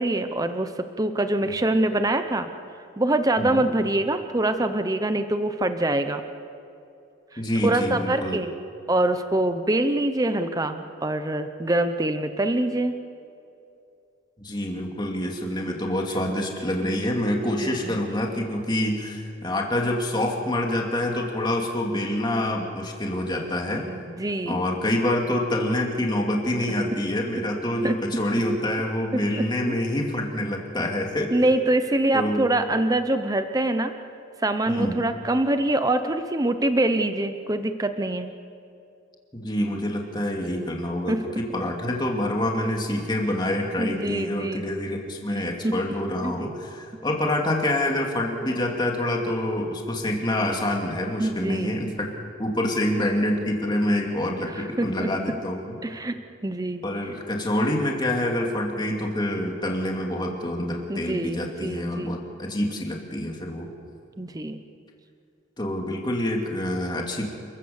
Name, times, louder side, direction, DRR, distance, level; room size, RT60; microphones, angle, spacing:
voice 1, 0.0-2.5 3.0-6.2 7.3-8.5 8.9-12.9 17.6-18.0 23.8-24.6 27.8-28.0 29.4-29.8 31.3-33.9 34.4-38.3 41.1-41.2 43.8-44.7 45.6-45.7 46.2-46.3 51.2-51.7 54.5-55.1 55.8-56.8 60.9-62.2 64.2-64.6, right 1 dB, 20° right, 9 dB, 0.8 m, -25 dB
voice 2, 7.4-8.4 14.4-23.8 24.5-31.3 32.1-32.4 34.7-35.0 39.3-52.1 52.4-55.8 56.8-63.7 65.6-67.3, left 1 dB, 20° left, 0 dB, 2.6 m, -26 dB
29.0 x 14.5 x 7.2 m, 2.6 s
head